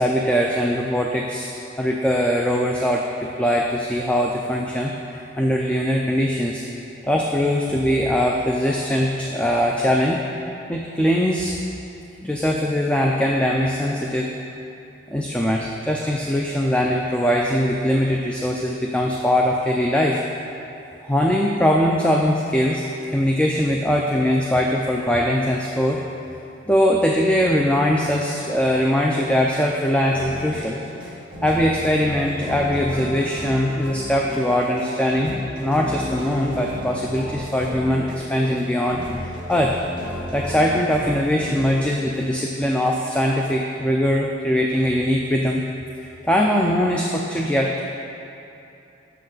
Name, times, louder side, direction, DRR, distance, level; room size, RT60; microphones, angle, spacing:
voice 1, 0.0-1.5 1.8-6.6 7.1-10.2 10.7-11.6 12.2-14.3 15.1-20.2 21.0-22.8 23.1-26.0 26.7-30.8 31.4-35.3 35.6-39.8 40.3-45.6 46.2-47.8, equal, 5° left, -1 dB, 0.3 m, -21 dB
sound 1, 30.1-42.4, left 1 dB, 25° right, 1.5 m, -33 dB
7.6 x 6.7 x 3.9 m, 2.8 s
head